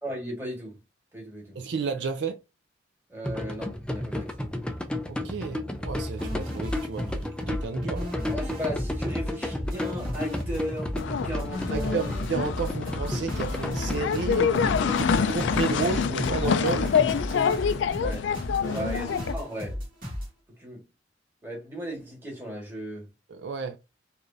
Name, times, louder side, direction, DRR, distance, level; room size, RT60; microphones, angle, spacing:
voice 1, 0.0-0.7 1.1-1.6 3.1-4.4 8.3-12.1 14.5-14.6 18.0-18.3 18.7-19.8 20.6-20.8 21.4-23.1, equal, 10° right, 1.6 m, -36 dB
voice 2, 1.6-2.4 5.1-8.0 11.7-17.0 18.6-18.9 23.3-23.8, right 5 dB, 65° right, 0.4 m, -32 dB
sound 1, 3.2-17.1, left 1 dB, 5° left, 0.4 m, -33 dB
sound 2, 6.2-20.3, left 1 dB, 50° right, 2.0 m, -35 dB
sound 3, 11.0-19.3, left 7 dB, 75° left, 0.3 m, -27 dB
4.7 x 2.5 x 2.6 m
head